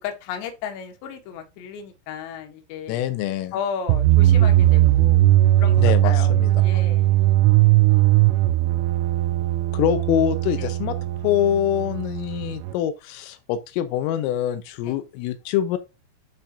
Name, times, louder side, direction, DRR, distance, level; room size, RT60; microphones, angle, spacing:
voice 1, 0.0-3.0 3.5-5.3 5.6-6.3 6.6-7.2 7.9-8.3 10.6-10.7 14.8-15.0, left 7 dB, 70° left, 3.4 m, -34 dB
voice 2, 2.9-3.5 5.8-6.5 9.7-11.0 11.2-15.8, left 10 dB, 85° left, 3.5 m, -24 dB
sound 1, 3.9-12.7, right 15 dB, 85° right, 3.0 m, -18 dB
11.5 x 6.2 x 2.6 m
omnidirectional pair, 5.8 m